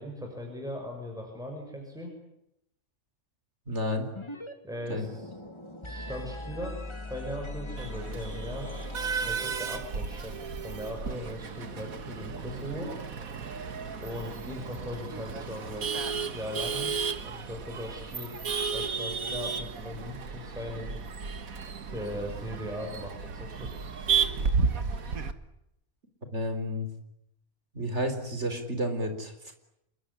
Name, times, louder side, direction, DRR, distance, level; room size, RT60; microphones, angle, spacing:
voice 1, 0.0-2.1 4.6-5.3 5.8-6.8 7.1-8.7 9.2-10.4 10.6-12.9 14.0-15.9 16.2-17.0 17.2-21.0 21.9-23.8, left 1 dB, ahead, 1 dB, 6.4 m, -39 dB
voice 2, 3.7-4.1 4.9-5.0 26.3-26.9 27.7-29.5, equal, 55° right, 7 dB, 4.3 m, -31 dB
sound 1, 4.2-4.5 4.8-9.8, left 1 dB, 20° left, 2.3 m, -40 dB
Male speech man speaking / Laughter / Chatter, 7.8-25.3, right 5 dB, 80° right, 2.0 m, -33 dB
27.0 x 22.0 x 9.9 m, 0.82 s
omnidirectional pair, 1.4 m